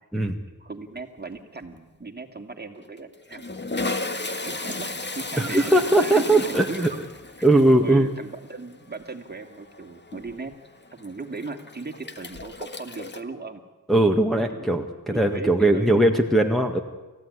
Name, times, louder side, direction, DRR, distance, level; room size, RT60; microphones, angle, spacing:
voice 1, 0.6-3.4 4.1-7.0 7.5-10.5 10.9-13.6 14.5-14.7 15.1-16.1, right 3 dB, 30° right, 5 dB, 2.5 m, -37 dB
Toilet flush, 1.0-1.4 1.6-1.8 2.8-13.2, left 3 dB, 30° left, 1.8 m, -35 dB
voice 2, 5.4-6.9 7.4-8.1 13.9-16.8, right 1 dB, ahead, 2 dB, 1.9 m, -19 dB
29.0 x 15.0 x 9.9 m, 1.2 s
cardioid pair, 75°, 35 cm